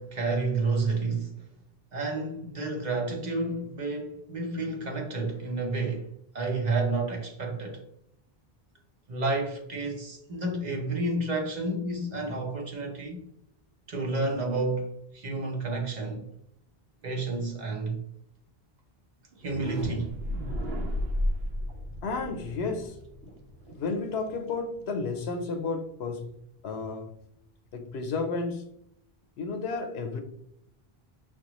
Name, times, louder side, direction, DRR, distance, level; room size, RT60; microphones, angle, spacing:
voice 1, 0.0-1.3 1.9-6.1 6.3-7.8 9.1-13.3 13.9-16.3 17.0-18.0 19.4-20.1, right 3 dB, 45° right, 0.9 m, -30 dB
sound 1, 19.3-25.2, equal, 80° right, 0.9 m, -34 dB
voice 2, 22.0-23.0 23.7-26.3 26.6-27.2 27.7-28.7 29.4-30.2, left 4 dB, 90° left, 0.9 m, -32 dB
5.8 x 2.2 x 3.0 m
omnidirectional pair, 1.0 m